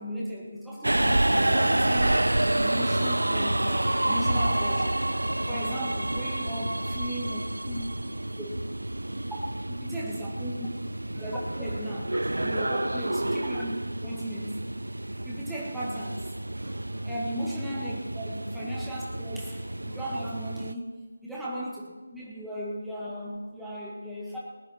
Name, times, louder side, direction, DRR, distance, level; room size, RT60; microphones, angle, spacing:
voice 1, 0.0-2.3 2.6-5.0 5.5-7.9 8.4-8.5 9.7-10.7 11.1-14.6 15.2-16.3 16.6-24.4, equal, ahead, -7 dB, 1.9 m, -36 dB
Subway metro underground, 0.8-20.7, right 1 dB, 80° right, 0.4 m, -29 dB
20.0 x 9.4 x 4.4 m, 1.3 s
figure-of-eight pair, 160°, 0 cm